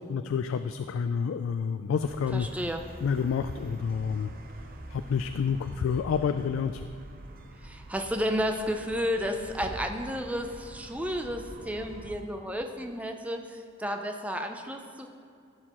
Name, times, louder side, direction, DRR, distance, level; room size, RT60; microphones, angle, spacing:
voice 1, 0.1-2.5 3.0-4.3 4.9-6.8, left 6 dB, 85° left, 10 dB, 0.3 m, -29 dB
sound 1, 2.0-12.2, right 1 dB, 45° right, 0.7 m, -45 dB
voice 2, 2.3-2.8 7.6-15.1, equal, 5° right, 4 dB, 0.5 m, -32 dB
15.0 x 6.5 x 3.0 m, 2.5 s
head